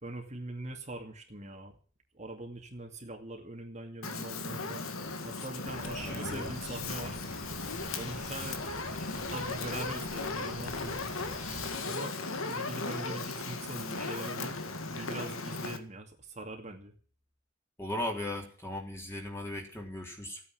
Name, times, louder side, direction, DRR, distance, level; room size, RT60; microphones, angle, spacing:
voice 1, 0.0-1.7 2.1-4.8 5.2-7.2 8.0-8.6 9.3-11.0 11.8-12.1 12.5-14.6 14.9-16.9, right 2 dB, 35° right, 2 dB, 2.4 m, -42 dB
Fire, 4.0-15.8, left 3 dB, 80° left, 2.0 m, -37 dB
sound 1, 5.7-11.8, left 1 dB, 35° left, 4.5 m, -47 dB
voice 2, 6.0-6.5 17.8-20.4, left 1 dB, 15° left, 1 dB, 3.7 m, -37 dB
15.5 x 9.5 x 8.6 m, 0.42 s
head